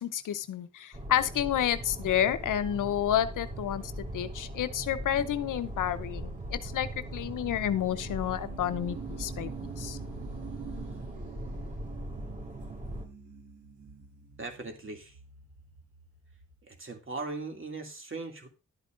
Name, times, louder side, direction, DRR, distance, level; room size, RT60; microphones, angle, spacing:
voice 1, 0.0-3.8 4.1-9.5 9.8-10.0, left 10 dB, 80° left, 12 dB, 0.7 m, -30 dB
sound 1, 0.9-13.1, right 1 dB, 25° right, 3.1 m, -40 dB
sound 2, 2.9-16.6, right 5 dB, 90° right, 2.4 m, -48 dB
voice 2, 14.4-15.2 16.6-18.5, right 3 dB, 40° right, 4 dB, 2.3 m, -39 dB
11.5 x 8.3 x 2.5 m, 0.31 s
supercardioid pair, 45°, 31 cm